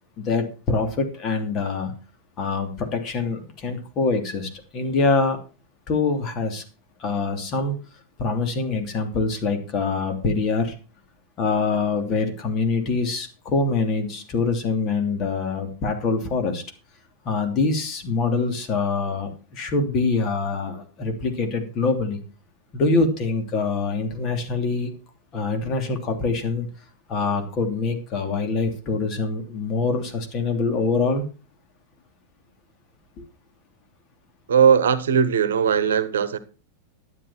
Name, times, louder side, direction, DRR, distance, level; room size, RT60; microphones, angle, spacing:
voice 1, 0.2-1.9 2.4-5.4 5.9-6.6 7.0-7.7 8.2-10.7 11.4-16.6 17.2-22.2 22.7-24.9 25.3-26.7 27.1-31.2, left 4 dB, 35° left, 3.1 m, -24 dB
voice 2, 34.5-36.4, right 7 dB, 65° right, 1.1 m, -19 dB
12.0 x 9.6 x 4.3 m
figure-of-eight pair, 90°, 0 cm